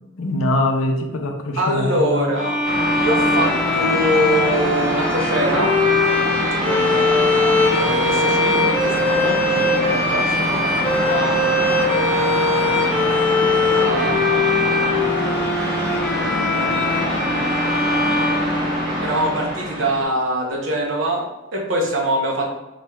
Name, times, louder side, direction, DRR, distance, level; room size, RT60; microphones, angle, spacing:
voice 1, 0.2-2.3, left 1 dB, 80° left, 3 dB, 0.6 m, -22 dB
voice 2, 1.5-2.6 3.0-5.7 6.6-11.7 13.7-14.9 19.0-22.5, right 1 dB, 65° right, 0 dB, 0.8 m, -24 dB
sound 1, 2.3-19.2, left 3 dB, 5° left, 0.6 m, -21 dB
sound 2, 2.6-20.0, equal, 40° right, 1.3 m, -24 dB
4.1 x 3.0 x 2.3 m, 1.0 s
head